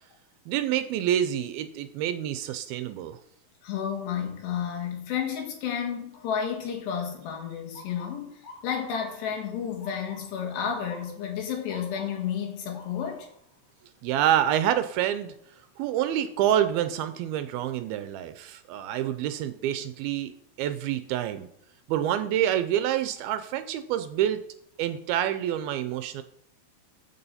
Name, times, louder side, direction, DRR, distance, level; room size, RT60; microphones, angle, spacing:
voice 1, 0.5-3.2 14.0-15.3 15.8-20.3 20.6-21.5 21.9-24.4 24.8-26.2, right 11 dB, 80° right, 10 dB, 2.3 m, -27 dB
voice 2, 3.6-8.3 8.6-13.3, left 8 dB, 85° left, 2 dB, 3.9 m, -31 dB
Motor vehicle (road) / Siren, 7.7-19.6 20.1-20.5 21.3-21.6 23.5-23.7 24.2-24.3 24.8-25.4, left 2 dB, 50° left, 2.7 m, -52 dB
14.5 x 6.9 x 4.2 m, 0.72 s
omnidirectional pair, 4.7 m